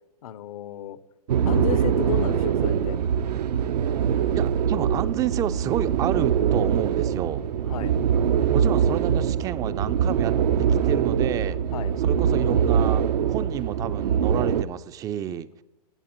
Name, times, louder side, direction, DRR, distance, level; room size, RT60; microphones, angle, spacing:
voice 1, 0.2-1.0 1.5-3.0 7.7-7.9 11.7-11.9, left 11 dB, 60° left, 16 dB, 0.7 m, -32 dB
sound 1, 1.3-14.6, right 8 dB, 75° right, 0.5 m, -23 dB
voice 2, 4.3-7.5 8.5-10.3 10.6-11.6 12.0-15.5, right 10 dB, 15° right, 14 dB, 0.3 m, -30 dB
17.0 x 7.0 x 3.0 m, 0.89 s
hypercardioid pair, 120°, 21 cm